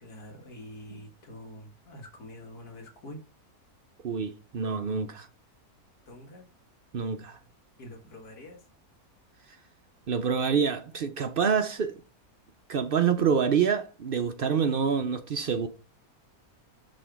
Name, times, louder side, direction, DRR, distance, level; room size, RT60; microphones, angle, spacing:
voice 1, 0.0-3.2 6.1-6.4 7.8-8.6, left 1 dB, 85° left, 2.0 m, -45 dB
voice 2, 4.0-5.3 6.9-7.4 10.1-12.0 12.7-15.7, right 6 dB, 60° right, 0.5 m, -27 dB
6.5 x 3.6 x 4.5 m
omnidirectional pair, 1.6 m